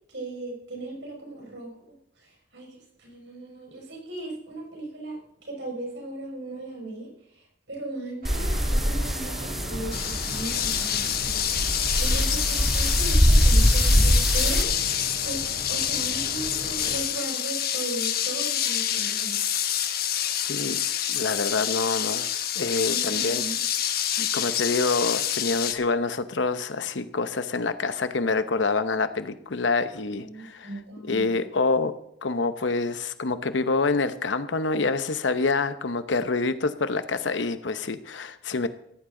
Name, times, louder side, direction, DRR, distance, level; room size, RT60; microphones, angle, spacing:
voice 1, 0.1-1.7 2.2-14.7 15.2-19.4 22.9-23.6 30.1-31.5, right 2 dB, 70° right, 0 dB, 5.7 m, -37 dB
sound 1, 8.2-14.6, equal, ahead, 1.2 m, -23 dB
sound 2, 8.2-17.0, right 1 dB, 50° right, 2.4 m, -39 dB
sound 3, 9.9-25.7, left 10 dB, 55° left, 1.1 m, -27 dB
voice 2, 20.4-22.3 22.6-23.4 24.2-30.7 31.1-31.9 32.2-38.7, left 3 dB, 85° left, 11 dB, 0.9 m, -26 dB
16.5 x 14.5 x 3.8 m, 0.74 s
head